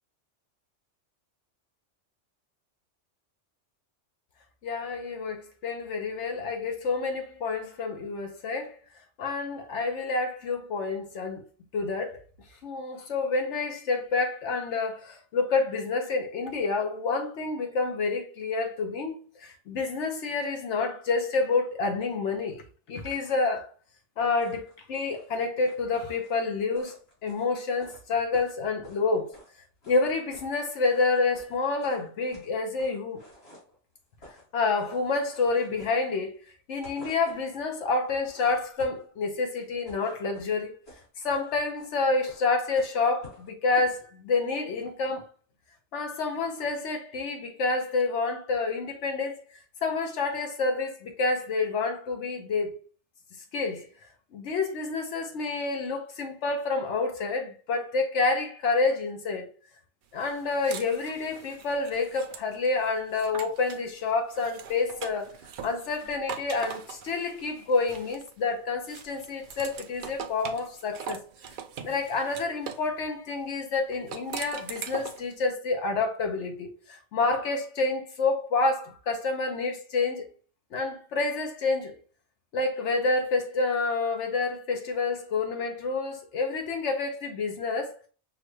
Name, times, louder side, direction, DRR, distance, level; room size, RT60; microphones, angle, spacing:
voice 1, 4.6-8.8 9.2-11.4 11.7-12.2 12.6-23.7 24.2-29.3 29.9-33.2 34.5-36.4 36.7-40.7 41.2-45.3 45.9-52.8 53.5-59.5 60.1-65.3 65.6-71.2 71.5-71.6 71.8-80.3 80.7-81.9 82.5-88.1, left 3 dB, 75° left, 1.0 m, -28 dB
sound 1, 24.4-29.5 29.8-30.5 30.8-33.8 34.1-34.5 34.7-36.4 36.7-37.5 38.0-39.1 39.6-44.0, left 1 dB, 55° left, 2.8 m, -52 dB
sound 2, 60.2-63.9 64.3-68.5 68.9-72.9 73.9-75.3, right 7 dB, 60° right, 0.5 m, -42 dB
6.0 x 2.2 x 3.1 m
omnidirectional pair, 1.2 m